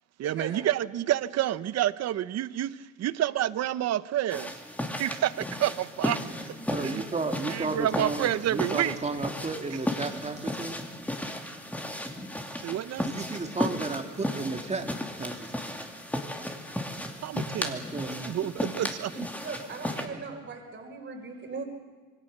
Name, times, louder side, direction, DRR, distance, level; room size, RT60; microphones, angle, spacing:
voice 1, 0.2-4.5 4.8-6.2 6.4-6.6 6.8-7.0 7.5-9.0 12.6-13.1 17.2-17.8 18.2-19.3, right 12 dB, 60° right, 16 dB, 0.9 m, -29 dB
sound 1, 4.3-20.1, left 1 dB, 5° left, 2.5 m, -35 dB
voice 2, 6.7-10.8 13.0-14.9 15.2-15.5 17.6-18.3, right 3 dB, 20° right, 5 dB, 2.5 m, -33 dB
voice 3, 19.4-21.6, right 5 dB, 40° right, 3 dB, 4.3 m, -39 dB
26.5 x 23.5 x 6.7 m, 1.4 s
cardioid pair, 130°, 30 cm